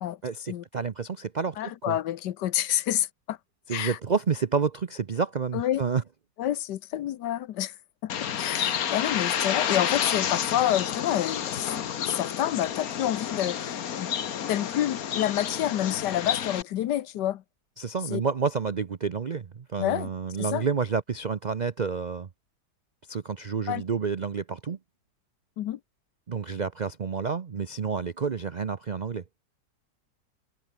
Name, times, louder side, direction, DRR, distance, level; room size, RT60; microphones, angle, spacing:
voice 1, 0.2-1.6 1.9-2.0 3.7-6.0 17.8-22.3 23.1-24.8 26.3-29.2, right 5 dB, 65° right, 0.4 m, -29 dB
voice 2, 1.6-3.4 3.7-4.0 5.5-5.8 6.4-7.7 8.0-11.7 12.0-14.1 14.5-17.4 18.1-18.2 19.8-20.1 20.4-20.7 23.7-23.8 25.6-25.8, left 12 dB, 80° left, 1.4 m, -28 dB
Bird, 8.1-16.6, left 9 dB, 60° left, 1.5 m, -30 dB
omnidirectional pair, 1.8 m